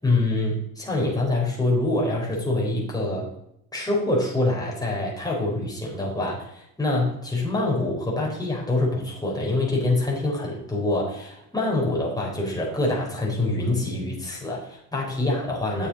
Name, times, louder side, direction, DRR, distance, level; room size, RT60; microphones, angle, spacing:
voice 1, 0.0-3.3 3.7-15.9, left 2 dB, 10° left, -3 dB, 4.1 m, -25 dB
9.1 x 7.1 x 4.2 m, 0.79 s
supercardioid pair, 85°, 44 cm